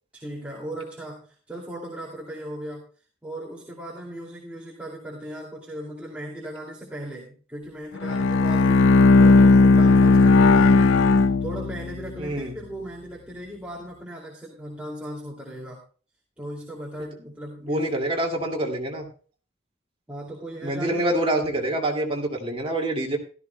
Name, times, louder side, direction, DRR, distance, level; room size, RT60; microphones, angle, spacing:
voice 1, 0.1-2.9 3.2-15.8 16.4-17.9 20.1-21.0, right 1 dB, 5° right, -4 dB, 2.5 m, -37 dB
Bowed string instrument, 8.0-12.1, left 3 dB, 85° left, 0.6 m, -16 dB
voice 2, 12.2-12.5 17.7-19.1 20.6-23.2, right 1 dB, 30° right, 1 dB, 2.3 m, -26 dB
16.0 x 13.0 x 2.2 m, 0.39 s
head